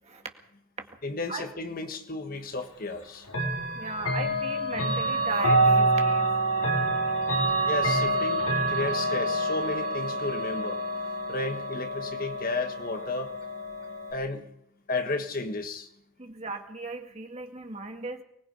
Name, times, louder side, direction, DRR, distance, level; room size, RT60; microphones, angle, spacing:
voice 1, 1.0-3.3 7.6-8.4 8.7-10.8 11.3-13.3 14.1-14.5 14.9-15.9, left 3 dB, 40° left, 7 dB, 1.5 m, -33 dB
Chime / Clock, 3.3-14.1, right 2 dB, 80° left, 4.7 m, -27 dB
voice 2, 3.8-6.3 16.2-18.2, right 3 dB, 30° right, 4 dB, 2.0 m, -37 dB
24.0 x 20.0 x 5.4 m, 0.71 s
head